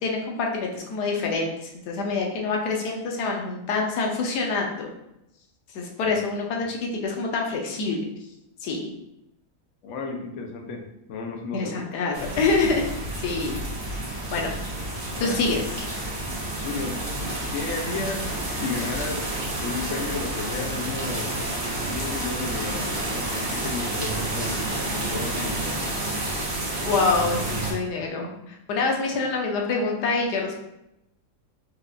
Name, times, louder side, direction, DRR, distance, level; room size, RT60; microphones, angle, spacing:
voice 1, 0.0-4.9 5.7-8.0 8.6-8.9 11.5-12.9 13.2-13.6 14.3-14.5 15.2-15.6 26.8-30.5, left 3 dB, 90° left, 0 dB, 1.3 m, -26 dB
voice 2, 9.8-11.9 15.2-15.4 16.6-17.0 17.5-21.4 21.8-24.6 24.9-25.8, left 4 dB, 65° left, 2 dB, 0.8 m, -33 dB
sound 1, 12.1-27.7, right 1 dB, 45° right, 0.9 m, -30 dB
4.5 x 2.4 x 2.5 m, 0.84 s
omnidirectional pair, 1.7 m